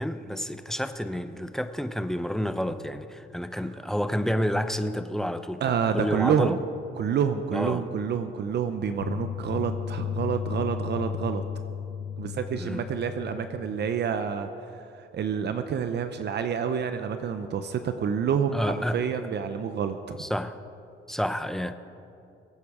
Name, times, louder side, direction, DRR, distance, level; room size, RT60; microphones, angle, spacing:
voice 1, 0.0-6.6 7.5-7.8 12.6-12.9 18.5-19.0 20.2-20.6 21.1-21.8, equal, ahead, 0.7 m, -29 dB
voice 2, 5.6-6.6 6.9-11.4 12.2-14.5 15.0-20.2, right 7 dB, 60° right, 0.8 m, -28 dB
sound 1, 9.0-14.0, left 8 dB, 50° left, 0.6 m, -34 dB
23.5 x 8.6 x 4.9 m
cardioid pair, 90°, 20 cm